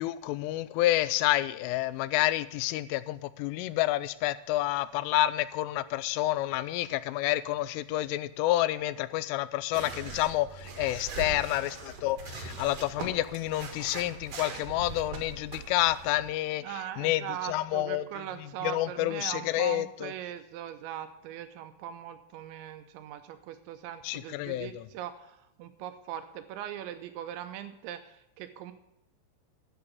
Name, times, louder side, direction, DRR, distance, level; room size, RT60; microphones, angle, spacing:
voice 1, 0.0-16.6 17.0-18.0 18.6-20.1 24.0-24.8, left 15 dB, 85° left, 16 dB, 3.1 m, -29 dB
sound 1, 9.7-16.3, right 4 dB, 65° right, 1.6 m, -41 dB
voice 2, 16.6-28.7, right 11 dB, 80° right, 9 dB, 2.8 m, -40 dB
11.5 x 6.8 x 8.4 m, 0.84 s
omnidirectional pair, 5.7 m